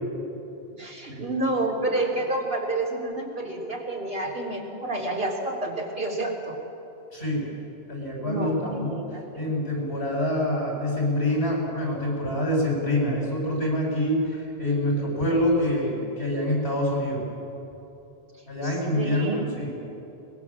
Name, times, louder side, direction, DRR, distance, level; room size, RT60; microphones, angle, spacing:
voice 1, 0.8-6.6 8.2-9.5 18.6-19.5, right 2 dB, 70° right, -2 dB, 3.7 m, -29 dB
voice 2, 7.1-7.5 7.9-9.0 9.4-17.2 18.5-19.9, left 1 dB, 90° left, -3 dB, 7.5 m, -26 dB
22.5 x 21.5 x 7.5 m, 2.9 s
omnidirectional pair, 1.0 m